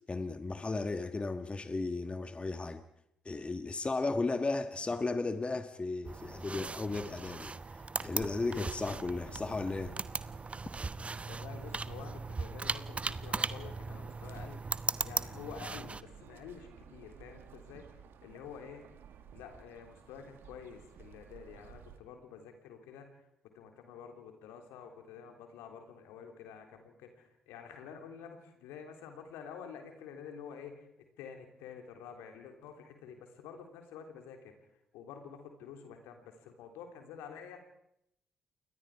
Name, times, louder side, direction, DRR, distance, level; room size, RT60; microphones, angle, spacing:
voice 1, 0.0-2.8 3.2-10.0, left 3 dB, 25° left, 9 dB, 1.5 m, -35 dB
sound 1, 6.1-16.0, right 4 dB, 30° right, 0.9 m, -38 dB
sound 2, 8.2-22.0, right 7 dB, 65° right, 2.0 m, -54 dB
voice 2, 11.3-18.8 19.3-23.3 23.5-34.5 34.9-37.6, left 7 dB, 75° left, 4 dB, 3.3 m, -49 dB
28.5 x 23.0 x 4.9 m, 0.78 s
hypercardioid pair, 45°, 4 cm